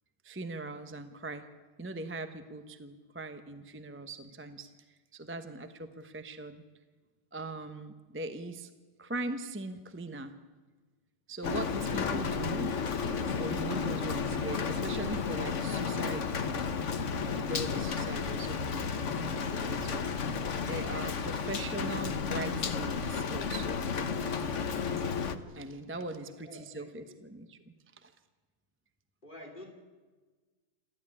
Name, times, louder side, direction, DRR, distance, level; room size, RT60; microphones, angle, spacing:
voice 1, 0.2-1.4 1.8-4.7 5.1-6.6 7.3-8.7 9.0-10.3 11.3-12.7 13.0-16.5 17.3-20.0 20.3-24.1 24.9-25.1 25.5-27.6 28.0-28.1, right 2 dB, 10° right, 9 dB, 0.6 m, -40 dB
Rain, 11.4-25.4, left 5 dB, 45° left, 1.2 m, -32 dB
voice 2, 25.9-27.2 29.2-29.7, left 1 dB, 25° left, 4 dB, 2.9 m, -51 dB
27.0 x 14.5 x 9.9 m, 1.4 s
omnidirectional pair, 2.2 m